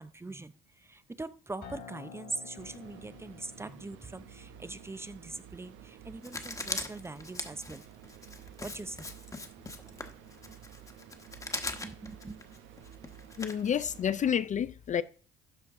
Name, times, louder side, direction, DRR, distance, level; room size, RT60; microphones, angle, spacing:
voice 1, 0.0-7.8 8.6-9.1 9.8-10.1 10.4-10.6 11.7-12.6, right 2 dB, 15° right, 0.6 m, -42 dB
Acoustic guitar, 1.6-6.8, left 6 dB, 60° left, 2.6 m, -52 dB
sound 1, 2.6-14.3, right 10 dB, 80° right, 0.9 m, -52 dB
Writing, 6.2-14.2, left 2 dB, 15° left, 1.2 m, -41 dB
voice 2, 13.4-15.0, left 8 dB, 40° left, 0.5 m, -29 dB
12.5 x 4.4 x 3.6 m
supercardioid pair, 85°, 19 cm